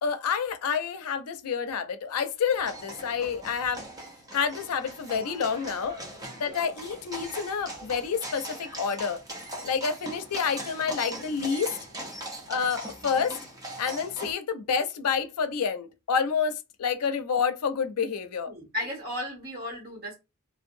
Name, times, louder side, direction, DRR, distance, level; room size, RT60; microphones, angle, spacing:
voice 1, 0.0-3.8 4.3-5.9 6.4-9.2 9.6-11.8 12.5-13.3 13.8-18.5, left 6 dB, 80° left, 0.4 m, -28 dB
sound 1, 2.5-14.3, right 1 dB, 15° right, 0.6 m, -40 dB
voice 2, 18.5-20.1, left 1 dB, 45° right, 1.2 m, -35 dB
2.7 x 2.1 x 2.5 m
head